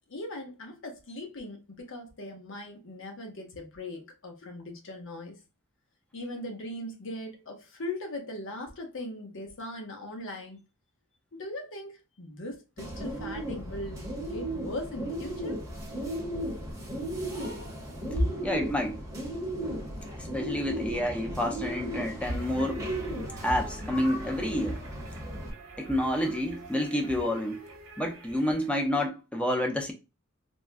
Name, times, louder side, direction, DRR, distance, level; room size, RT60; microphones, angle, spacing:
voice 1, 0.1-5.4 6.1-10.6 11.3-15.5 23.0-23.1, left 1 dB, 60° left, 0.9 m, -39 dB
Bird, 12.8-25.5, right 1 dB, 15° right, 0.9 m, -36 dB
voice 2, 18.2-19.0 20.1-22.9 23.4-24.8 25.8-27.7 28.0-29.9, left 1 dB, 5° left, 0.6 m, -29 dB
sound 1, 22.2-28.8, right 1 dB, 70° right, 1.0 m, -42 dB
3.5 x 2.2 x 2.5 m
head